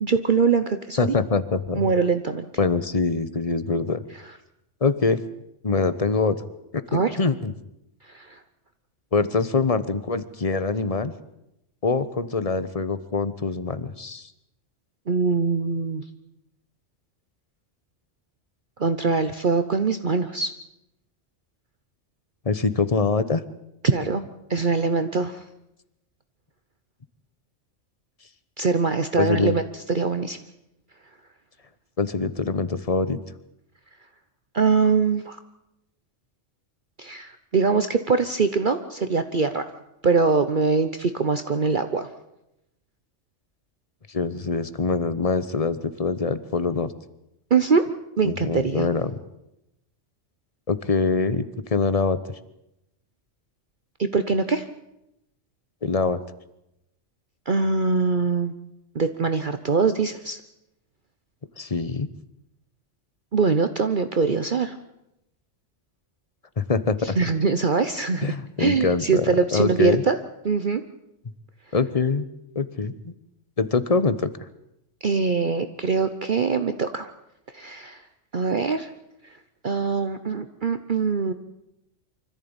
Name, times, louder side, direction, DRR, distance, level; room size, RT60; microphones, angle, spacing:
voice 1, 0.0-1.1 1.7-2.5 6.9-7.2 8.1-8.4 15.1-16.0 18.8-20.5 23.8-24.2 24.5-25.4 28.6-29.6 29.9-30.4 34.5-35.4 37.0-39.6 40.0-42.1 47.5-47.9 48.2-48.9 54.0-54.6 57.5-58.5 58.9-60.4 63.3-64.8 67.2-70.2 70.4-70.8 75.0-77.1 77.5-78.0 78.3-78.9 79.6-81.3, right 4 dB, 45° right, 9 dB, 1.0 m, -23 dB
voice 2, 1.0-1.9 2.6-4.0 4.8-5.2 5.6-6.4 6.7-7.5 9.1-11.1 11.8-14.3 22.4-23.4 29.2-29.6 32.0-33.2 44.1-46.9 48.2-49.1 50.7-52.2 55.8-56.2 61.6-62.1 66.6-67.2 68.2-69.3 69.5-70.0 71.7-72.2 72.5-73.1 73.6-74.3, left 4 dB, 30° left, 14 dB, 1.1 m, -24 dB
25.0 x 14.5 x 8.9 m, 0.86 s
omnidirectional pair, 1.3 m